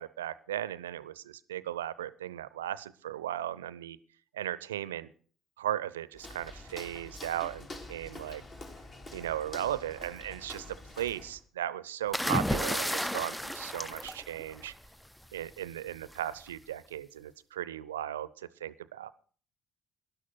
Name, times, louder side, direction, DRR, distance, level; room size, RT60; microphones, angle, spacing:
voice 1, 0.0-4.0 4.3-5.1 5.6-8.4 9.1-14.7 15.3-19.1, right 12 dB, 80° right, 19 dB, 0.6 m, -36 dB
Walk footsteps, 6.1-11.4, left 2 dB, 35° left, 3.4 m, -47 dB
sound 1, 12.1-14.9 16.1-16.4, left 1 dB, 5° left, 0.6 m, -32 dB
12.5 x 11.0 x 5.8 m, 0.43 s
figure-of-eight pair, 55°, 0 cm